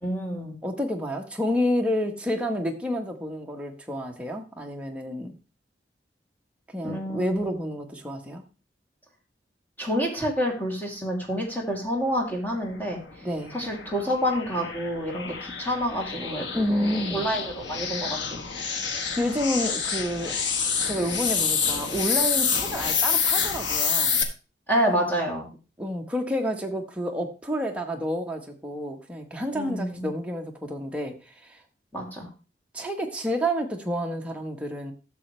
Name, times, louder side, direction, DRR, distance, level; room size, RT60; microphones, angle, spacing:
voice 1, 0.0-0.6 6.8-7.6 9.8-13.0 13.5-18.4 24.7-25.5 29.5-30.1 31.9-32.3, equal, 10° left, -2 dB, 2.8 m, -28 dB
voice 2, 0.6-5.3 6.7-8.4 13.2-13.6 16.5-17.3 19.2-20.3 20.8-24.2 25.8-31.3 32.7-34.9, equal, 5° right, 1 dB, 1.2 m, -29 dB
sound 1, 12.7-24.2, left 6 dB, 90° left, 1.3 m, -28 dB
12.5 x 7.2 x 3.3 m, 0.33 s
head